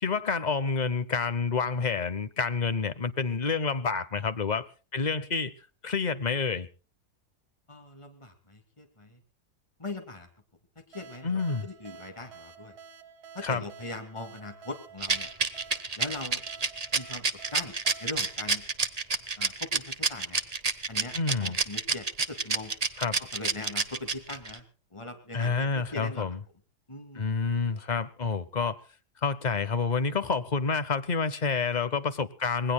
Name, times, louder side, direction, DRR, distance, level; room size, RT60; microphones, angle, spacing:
voice 1, 0.0-4.6 4.9-5.5 5.8-6.7 11.2-11.7 13.4-13.6 21.1-21.6 23.0-23.2 25.3-26.4 27.1-28.8 29.2-32.7, left 4 dB, 35° left, 0.9 m, -28 dB
voice 2, 7.7-9.2 9.8-10.3 10.8-12.8 13.3-15.3 16.0-16.4 16.9-17.2 17.5-17.7 18.0-18.6 19.4-20.4 20.9-22.7 23.2-24.6 24.9-26.3 26.9-27.4, left 2 dB, 20° left, 2.6 m, -40 dB
sound 1, 10.9-19.4, right 6 dB, 75° right, 1.9 m, -50 dB
Rattle, 15.0-24.6, right 4 dB, 25° right, 1.0 m, -28 dB
26.5 x 20.0 x 2.3 m
omnidirectional pair, 1.7 m